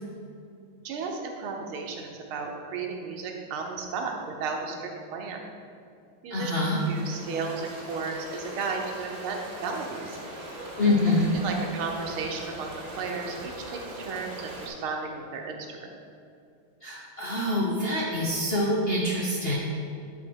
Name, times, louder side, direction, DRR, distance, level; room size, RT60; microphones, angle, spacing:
voice 1, 0.8-5.4 6.2-6.5 6.9-10.2 11.1-11.2 11.4-15.9, right 4 dB, 90° right, 1 dB, 1.8 m, -34 dB
voice 2, 6.3-6.8 10.8-11.4 16.8-19.5, left 1 dB, 55° left, -5 dB, 0.6 m, -25 dB
sound 1, 6.3-14.7, right 1 dB, 35° right, 1.4 m, -41 dB
9.9 x 4.5 x 4.6 m, 2.4 s
omnidirectional pair, 2.3 m